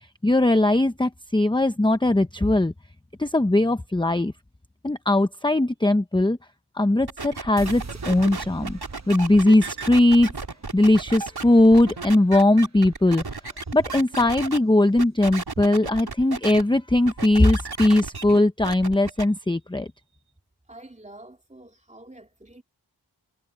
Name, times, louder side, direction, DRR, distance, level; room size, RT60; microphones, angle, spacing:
voice 1, 0.2-2.7 3.2-4.3 4.8-6.4 6.7-8.8 9.1-10.3 10.7-13.2 13.7-19.9, left 1 dB, 10° left, 0.8 m, -20 dB
sound 1, 7.1-14.6 15.0-16.6 16.9-19.2, right 4 dB, 60° right, 3.4 m, -34 dB
sound 2, 7.6-13.7, right 4 dB, 40° right, 1.1 m, -44 dB
voice 2, 20.7-22.6, right 1 dB, 15° right, 2.5 m, -47 dB
wide cardioid pair, 60°, 42 cm